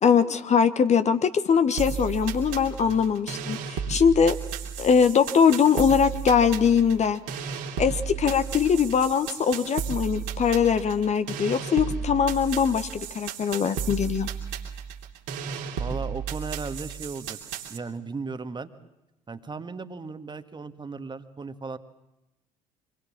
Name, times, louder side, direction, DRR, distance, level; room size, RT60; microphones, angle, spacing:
voice 1, 0.0-4.4 4.8-7.2 7.8-14.3, left 7 dB, 35° left, 11 dB, 1.2 m, -22 dB
sound 1, 1.8-17.8, right 7 dB, 60° right, 3.0 m, -34 dB
voice 2, 15.8-17.4 17.7-18.7 19.3-21.8, right 4 dB, 20° right, 9 dB, 1.8 m, -36 dB
26.5 x 21.0 x 7.4 m, 0.96 s
figure-of-eight pair, 55°, 20 cm